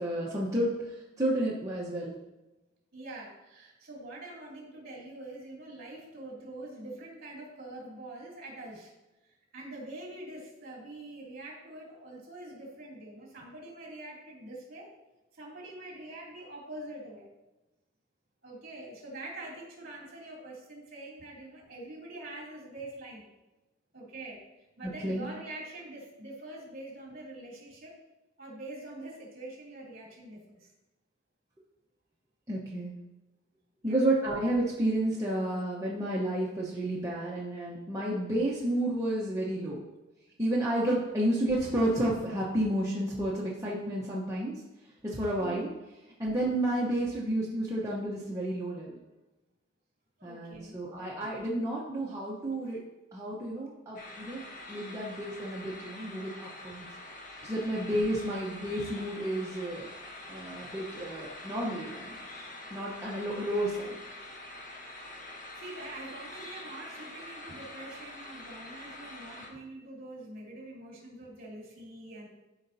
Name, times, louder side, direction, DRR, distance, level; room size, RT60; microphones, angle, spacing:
voice 1, 0.0-2.1 24.8-25.3 32.5-32.9 33.8-39.8 40.4-44.5 45.0-45.7 46.2-49.0 50.2-52.8 53.1-54.4 54.7-56.9 57.4-59.9 60.3-62.2 62.7-64.0, right 1 dB, 15° right, -6 dB, 1.0 m, -31 dB
voice 2, 2.9-8.9 9.2-14.9 15.3-17.3 18.4-23.2 23.9-24.4 24.8-27.9 28.4-30.7 33.8-34.0 45.4-45.6 50.2-50.8 65.6-72.3, right 2 dB, 50° right, -4 dB, 2.7 m, -45 dB
sound 1, 54.0-69.5, left 2 dB, 40° left, 1.2 m, -45 dB
13.0 x 5.0 x 2.7 m, 1.1 s
head